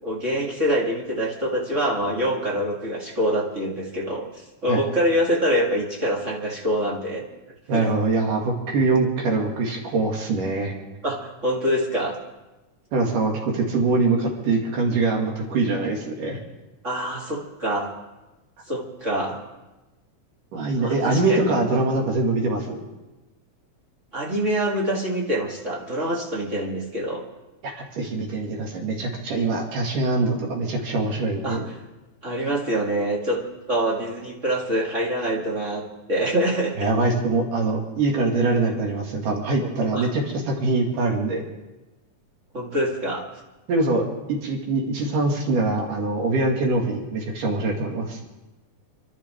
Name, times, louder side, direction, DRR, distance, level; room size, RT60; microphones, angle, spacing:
voice 1, 0.0-7.2 7.7-7.9 11.0-12.2 16.8-17.9 18.7-19.4 20.8-21.5 24.1-27.2 31.4-31.6 32.2-33.4 33.7-36.7 39.6-40.1 42.5-43.2, equal, 35° right, -3 dB, 1.2 m, -25 dB
voice 2, 7.7-10.7 12.9-16.4 20.5-22.8 27.6-31.6 36.8-41.4 43.7-48.2, right 3 dB, 70° right, -1 dB, 3.5 m, -23 dB
29.0 x 11.5 x 3.4 m, 1.1 s
omnidirectional pair, 4.0 m